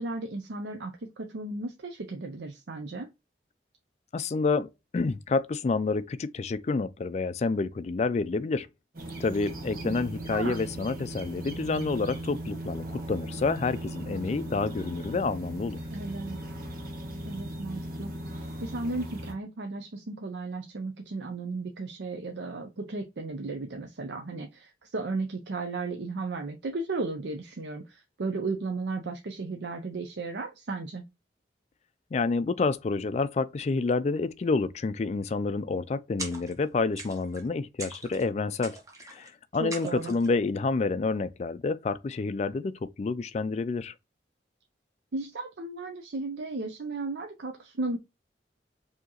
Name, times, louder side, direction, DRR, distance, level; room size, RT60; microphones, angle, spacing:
voice 1, 0.0-3.1 10.3-10.6 15.9-16.4 17.3-31.0 39.6-40.1 45.1-48.0, right 3 dB, 80° right, 0.6 m, -35 dB
voice 2, 4.1-8.7 9.2-15.8 32.1-38.8 39.1-43.9, left 3 dB, 40° left, 0.3 m, -29 dB
sound 1, 8.9-19.3, right 1 dB, 55° right, 1.1 m, -38 dB
sound 2, 36.2-36.7 37.0-37.5 37.8-38.3 38.6-39.3 39.7-40.3, right 2 dB, 20° right, 0.9 m, -41 dB
4.5 x 2.9 x 2.9 m
head